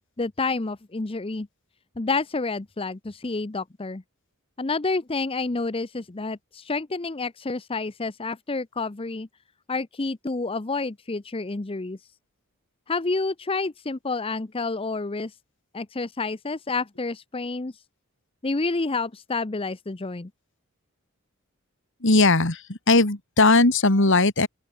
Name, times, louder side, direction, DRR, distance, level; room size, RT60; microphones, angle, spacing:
voice 1, 0.0-1.5 2.0-4.0 4.6-9.3 9.7-12.0 12.9-15.3 15.7-17.7 18.4-20.3, left 3 dB, 25° left, 0.7 m, -29 dB
voice 2, 22.0-24.5, left 3 dB, 55° left, 2.5 m, -19 dB
open air
head